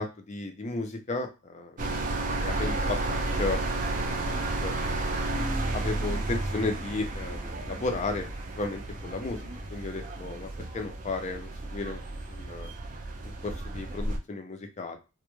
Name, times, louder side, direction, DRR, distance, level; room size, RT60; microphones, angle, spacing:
voice 1, 0.0-1.7 2.4-3.6 4.2-4.7 5.5-8.3 8.5-12.0 12.3-12.7 13.2-15.0, left 3 dB, 30° left, 5 dB, 0.4 m, -34 dB
sound 1, 1.8-14.2, right 2 dB, 35° right, 0.3 m, -32 dB
2.2 x 2.1 x 3.0 m, 0.29 s
head